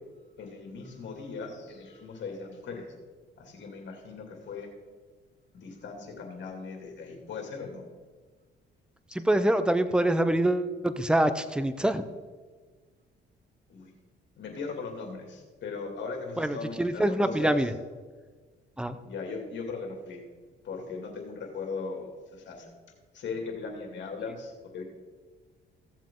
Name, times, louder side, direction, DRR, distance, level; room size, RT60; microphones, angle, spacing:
voice 1, 0.4-2.9 3.4-4.7 5.5-7.8 13.7-13.9 14.4-17.7 19.0-20.2 20.6-22.7 23.1-24.8, left 4 dB, 65° left, 2 dB, 2.6 m, -38 dB
voice 2, 9.2-12.0 16.4-17.7 18.8-19.0, right 1 dB, 5° right, 10 dB, 0.7 m, -25 dB
15.5 x 7.4 x 3.8 m, 1.4 s
cardioid pair, 90°, 20 cm